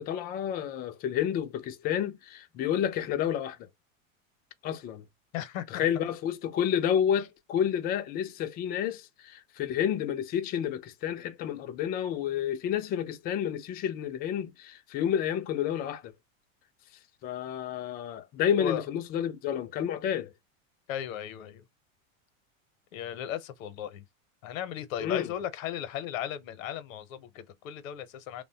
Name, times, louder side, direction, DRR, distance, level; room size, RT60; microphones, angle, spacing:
voice 1, 0.0-3.7 4.6-5.0 5.7-16.1 17.2-20.3 25.0-25.3, left 9 dB, 25° left, 0.3 m, -30 dB
voice 2, 5.3-5.8 18.6-18.8 20.9-21.6 22.9-24.0 24.4-28.4, left 10 dB, 75° left, 0.7 m, -36 dB
3.0 x 2.1 x 2.7 m
hypercardioid pair, 115°, 40 cm